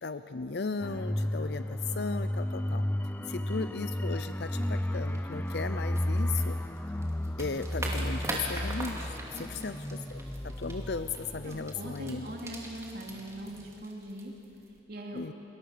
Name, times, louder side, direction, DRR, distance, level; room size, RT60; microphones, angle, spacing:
voice 1, 0.0-2.8 3.3-6.6 7.4-9.8 10.1-12.3 15.1-15.3, left 4 dB, 60° left, 10 dB, 0.6 m, -36 dB
sound 1, 0.8-13.2 13.5-13.6, left 1 dB, 10° left, 0.5 m, -33 dB
voice 2, 3.2-3.5 9.3-9.8 11.4-14.3 14.9-15.3, right 1 dB, 55° right, 0 dB, 2.9 m, -42 dB
sound 2, 4.6-14.8, right 1 dB, 15° right, 2.7 m, -42 dB
28.5 x 21.5 x 6.8 m, 2.9 s
head